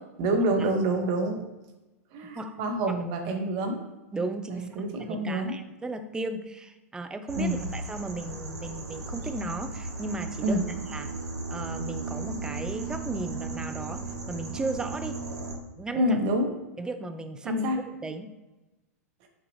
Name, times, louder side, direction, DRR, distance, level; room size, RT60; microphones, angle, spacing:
voice 1, 0.2-1.4 2.1-3.8 4.5-5.6 7.4-7.6 10.4-10.7 15.9-16.5 17.4-17.8, right 1 dB, 45° right, 3 dB, 0.9 m, -27 dB
voice 2, 4.1-4.7 5.1-10.6 10.9-11.1 11.5-15.2 15.8-16.2 16.8-17.7 18.0-18.3, right 2 dB, 10° right, 7 dB, 0.4 m, -35 dB
sound 1, 7.3-15.6, right 3 dB, 80° right, 0.8 m, -36 dB
6.1 x 2.4 x 3.1 m, 1.1 s
figure-of-eight pair, 100°, 8 cm